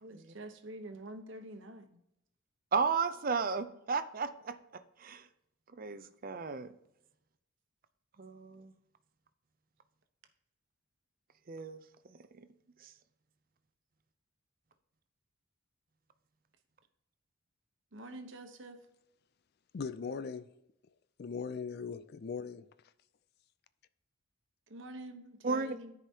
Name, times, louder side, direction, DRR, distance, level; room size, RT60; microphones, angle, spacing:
voice 1, 0.0-2.0 17.9-18.8 24.7-25.9, right 1 dB, 65° right, 1.0 m, -47 dB
voice 2, 2.7-4.6 5.0-5.3 5.8-6.7 8.2-8.7 11.5-11.8 12.4-12.5 12.8-12.9 25.4-25.8, right 5 dB, 45° right, 0.5 m, -34 dB
voice 3, 19.7-20.5 21.2-22.7, left 5 dB, 50° left, 0.4 m, -39 dB
13.5 x 5.0 x 2.8 m
head